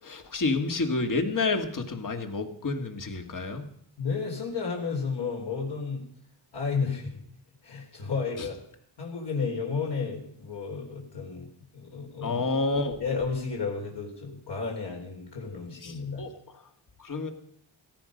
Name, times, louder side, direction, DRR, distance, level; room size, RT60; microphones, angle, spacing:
voice 1, 0.0-3.6 8.4-8.5 12.2-13.0 15.8-16.6 17.0-17.3, left 3 dB, 40° left, 6 dB, 2.2 m, -29 dB
voice 2, 4.0-6.0 6.5-7.2 7.6-8.6 9.0-11.5 11.7-12.4 13.0-16.2, left 5 dB, 60° left, -1 dB, 4.3 m, -32 dB
17.5 x 15.5 x 5.3 m, 0.64 s
wide cardioid pair, 120°, 47 cm